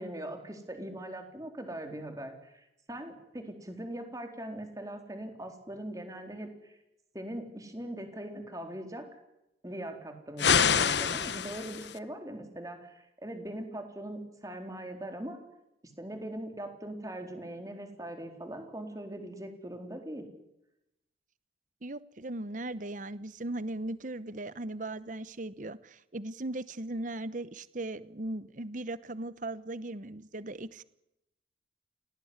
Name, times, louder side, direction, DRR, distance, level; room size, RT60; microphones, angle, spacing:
voice 1, 0.0-6.8 7.1-9.1 9.6-15.4 16.0-20.3, right 1 dB, 20° right, 5 dB, 4.0 m, -41 dB
sound 1, 10.4-12.0, left 7 dB, 65° left, 1.1 m, -26 dB
voice 2, 21.8-30.8, right 2 dB, 45° right, 16 dB, 0.9 m, -38 dB
27.5 x 18.5 x 9.7 m, 0.89 s
head